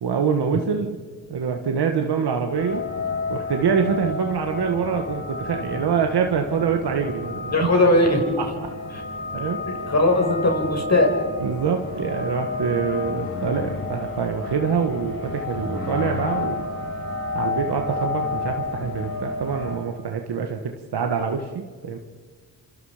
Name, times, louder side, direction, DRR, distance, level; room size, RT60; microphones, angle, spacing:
voice 1, 0.0-1.0 1.3-2.8 3.3-7.7 8.4-8.7 9.3-9.6 11.4-16.6 17.3-22.0, right 6 dB, 75° right, 4 dB, 1.8 m, -25 dB
sound 1, 2.6-19.8, left 3 dB, 60° left, 7.4 m, -31 dB
voice 2, 7.5-8.4 9.9-11.1, left 2 dB, 40° left, 3 dB, 6.0 m, -19 dB
28.0 x 27.0 x 5.1 m, 1.6 s
cardioid pair, 70°, 40 cm